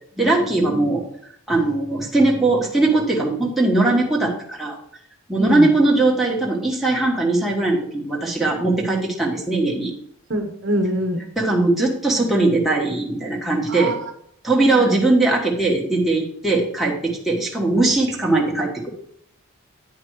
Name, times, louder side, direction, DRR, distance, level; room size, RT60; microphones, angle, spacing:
voice 1, 0.2-1.0 1.5-4.8 5.3-9.9 11.4-13.9 14.4-18.9, right 2 dB, ahead, -4 dB, 1.4 m, -20 dB
voice 2, 5.4-5.7 10.3-11.3 13.7-14.0 14.7-14.9, equal, 55° right, 4 dB, 1.0 m, -23 dB
9.3 x 5.1 x 4.7 m, 0.66 s
head